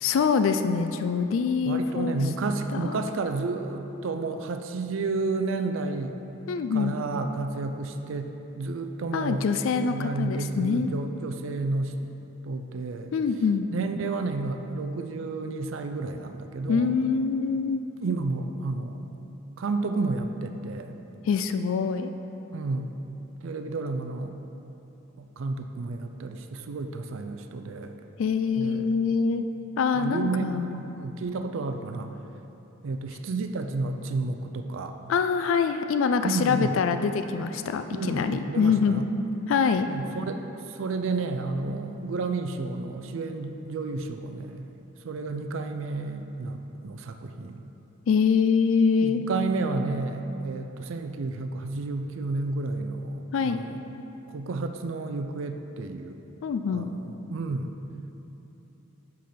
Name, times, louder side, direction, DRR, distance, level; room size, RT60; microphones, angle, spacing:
voice 1, 0.0-2.2 2.7-3.0 6.5-6.9 9.1-10.9 13.1-13.7 16.7-17.8 21.2-22.1 28.2-29.4 29.8-30.8 35.1-39.1 39.5-39.9 48.1-49.2 53.3-53.6 56.4-56.9, left 5 dB, 70° left, 8 dB, 0.3 m, -24 dB
voice 2, 1.7-6.2 6.7-9.5 9.8-12.0 12.4-13.1 13.7-16.9 18.0-19.1 19.6-21.0 22.5-22.9 23.4-24.4 25.2-27.9 28.6-28.9 29.9-32.1 32.8-35.0 36.2-36.8 37.9-39.0 39.9-44.7 45.0-47.7 49.0-53.8 54.3-56.2 56.7-57.0 57.3-57.7, right 3 dB, 70° right, 7 dB, 0.4 m, -31 dB
6.7 x 5.3 x 5.8 m, 2.9 s
head